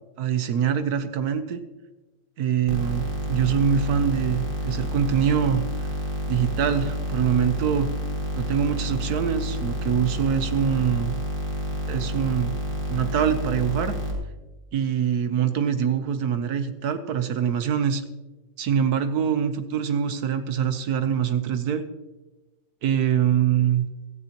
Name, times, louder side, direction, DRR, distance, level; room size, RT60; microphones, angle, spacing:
voice 1, 0.2-1.6 2.4-5.9 6.3-7.9 8.4-11.2 11.9-12.5 12.9-14.0 14.7-18.0 18.6-21.8 22.8-23.9, right 8 dB, 65° right, 10 dB, 1.1 m, -24 dB
sound 1, 2.7-14.1, equal, 25° right, 2.4 m, -29 dB
17.0 x 13.5 x 2.9 m, 1.1 s
omnidirectional pair, 2.1 m